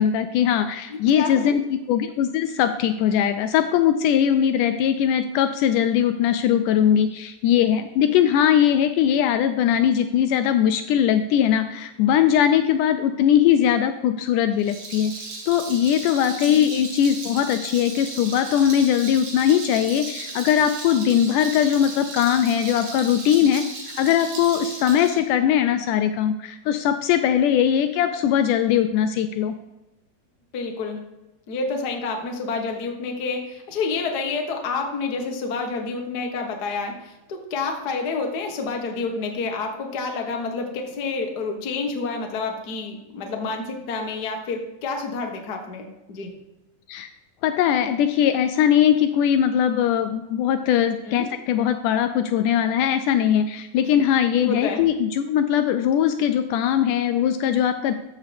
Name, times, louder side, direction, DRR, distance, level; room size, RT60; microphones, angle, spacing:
voice 1, 0.0-15.1 15.5-29.6 46.9-47.1 47.4-57.9, left 9 dB, 80° left, 9 dB, 1.9 m, -20 dB
voice 2, 0.9-1.6 8.0-8.1 16.4-16.6 30.5-31.0 31.5-46.3 51.1-51.3 54.3-54.8, left 4 dB, 65° left, 3 dB, 1.0 m, -29 dB
Rattle, 14.5-25.2, right 3 dB, 70° right, 3.3 m, -36 dB
13.0 x 7.5 x 3.4 m, 1.0 s
omnidirectional pair, 4.0 m